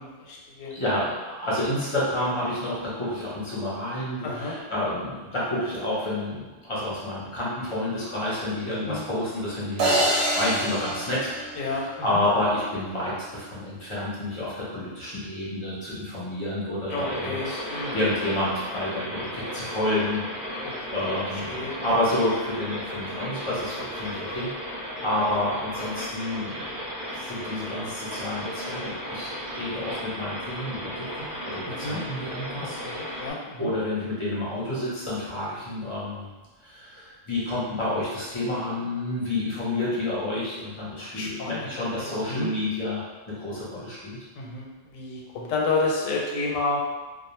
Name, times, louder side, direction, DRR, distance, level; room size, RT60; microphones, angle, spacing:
voice 1, 0.0-0.7 4.2-4.5 8.9-9.0 11.6-12.2 16.9-18.1 20.6-20.7 21.0-21.7 31.6-32.0 32.8-33.7 41.0-41.7 42.0-42.5 44.4-46.8, left 3 dB, 85° left, -2 dB, 1.0 m, -31 dB
voice 2, 0.7-11.3 11.6-20.2 20.5-26.8 27.1-33.2 33.6-36.3 36.6-43.0 43.3-44.3, left 1 dB, 30° left, -8 dB, 0.7 m, -29 dB
sound 1, 9.8-12.1, right 1 dB, 80° right, 1.0 m, -26 dB
sound 2, 16.9-33.3, equal, 50° right, 0.6 m, -35 dB
2.3 x 2.1 x 3.0 m, 1.2 s
omnidirectional pair, 1.3 m